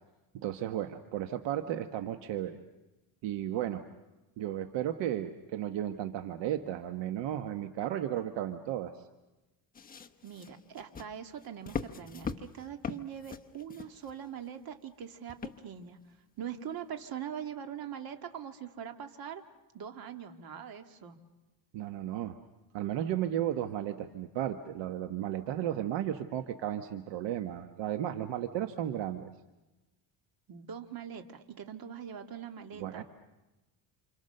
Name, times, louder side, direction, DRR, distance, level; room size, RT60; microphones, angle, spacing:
voice 1, 0.3-2.6 3.2-3.8 4.4-8.9 21.7-22.4 22.7-29.3 32.8-33.0, right 11 dB, 75° right, 8 dB, 1.3 m, -34 dB
sound 1, 9.7-14.5 15.3-15.9 16.5-16.6, left 6 dB, 20° left, 1.0 m, -41 dB
voice 2, 10.2-16.0 16.4-19.4 19.7-21.2 30.5-33.0, right 8 dB, 50° right, 6 dB, 2.0 m, -42 dB
29.0 x 27.5 x 6.7 m, 1.1 s
cardioid pair, 145°, 44 cm